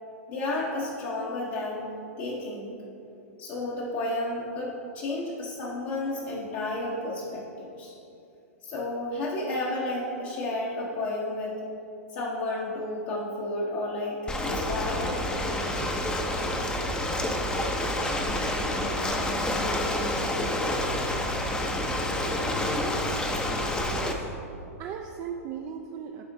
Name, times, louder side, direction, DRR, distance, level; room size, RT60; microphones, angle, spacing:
voice 1, 0.3-1.9 2.2-2.7 3.4-7.9 8.6-11.6 12.1-15.3, left 2 dB, 50° left, -4 dB, 1.0 m, -32 dB
Ocean, 14.3-24.1, left 1 dB, 10° left, 0.6 m, -28 dB
voice 2, 23.9-24.3 24.8-26.2, right 7 dB, 35° right, 3 dB, 0.4 m, -37 dB
11.5 x 4.3 x 2.6 m, 2.7 s
hypercardioid pair, 115°, 8 cm